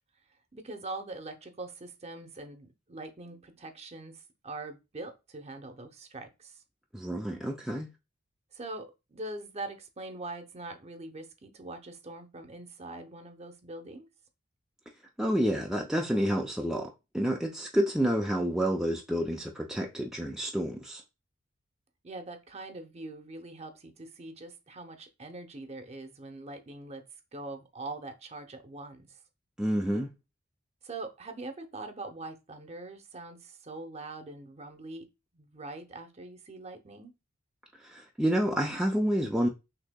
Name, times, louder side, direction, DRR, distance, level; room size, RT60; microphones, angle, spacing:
voice 1, 0.5-6.6 8.5-14.1 22.0-27.0 27.3-29.2 30.8-35.1 35.3-37.1, right 2 dB, 35° right, 0.7 m, -43 dB
voice 2, 6.9-7.9 15.2-21.0 29.6-30.1 37.8-39.5, equal, 5° right, 0.4 m, -29 dB
6.2 x 2.7 x 2.2 m
head